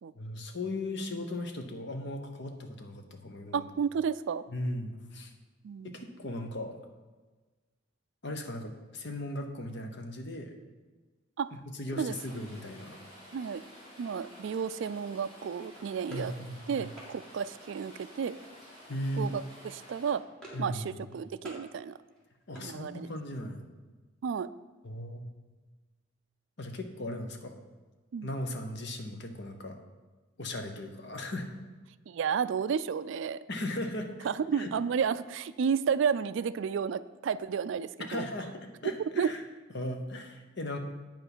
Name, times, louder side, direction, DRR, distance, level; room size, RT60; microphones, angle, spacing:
voice 1, 0.1-3.6 4.5-5.3 5.8-6.8 8.2-10.5 11.5-13.0 16.1-16.9 18.9-19.3 20.5-21.1 22.5-23.6 24.8-25.3 26.6-27.6 28.2-29.8 30.4-31.5 33.5-34.7 38.0-39.4 39.7-40.8, left 1 dB, 55° left, 5 dB, 1.0 m, -37 dB
voice 2, 3.5-4.4 5.6-6.1 11.4-11.5 12.0-12.2 13.3-13.6 14.0-16.3 16.7-18.3 19.1-20.2 20.6-22.0 22.6-23.1 24.2-24.5 28.1-28.3 32.1-33.4 34.2-38.3 39.2-39.3, right 6 dB, 60° right, 15 dB, 0.3 m, -32 dB
Rain, 12.1-20.1, equal, 30° left, 3.1 m, -52 dB
sound 1, 15.7-17.1 18.4-18.8 19.1-19.4 19.7-20.8 21.0-21.7 22.0-23.3, right 1 dB, 5° left, 2.2 m, -50 dB
8.7 x 5.7 x 6.1 m, 1.3 s
head